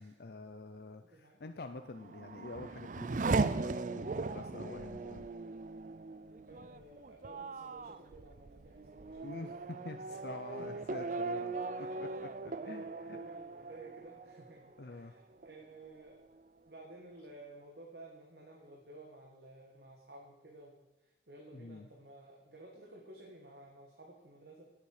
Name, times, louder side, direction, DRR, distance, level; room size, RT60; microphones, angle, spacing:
voice 1, 0.0-5.3 9.2-13.2 14.8-15.1 21.5-21.9, left 3 dB, 60° left, 7 dB, 0.6 m, -47 dB
voice 2, 1.0-1.4 6.5-9.5 10.1-11.0 11.7-12.0 12.5-16.2 16.7-24.7, right 2 dB, 60° right, -1 dB, 1.9 m, -54 dB
Race car auto racing / Accelerating revving vroom, 1.8-15.0 15.4-16.1, right 3 dB, 45° right, 0.5 m, -38 dB
15.5 x 8.4 x 5.0 m, 1.1 s
head